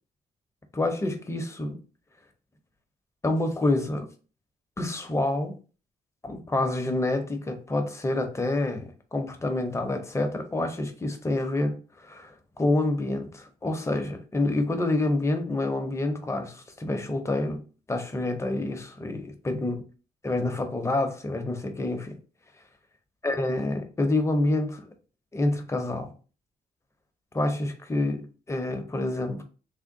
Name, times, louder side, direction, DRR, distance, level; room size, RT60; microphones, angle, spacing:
voice 1, 0.7-1.8 3.2-4.1 4.8-5.5 6.2-17.6 17.9-19.8 20.2-22.2 23.2-24.9 25.3-26.1 27.3-29.4, left 2 dB, 20° left, 0.6 m, -27 dB
3.5 x 2.2 x 3.7 m
cardioid pair, 130°, 15 cm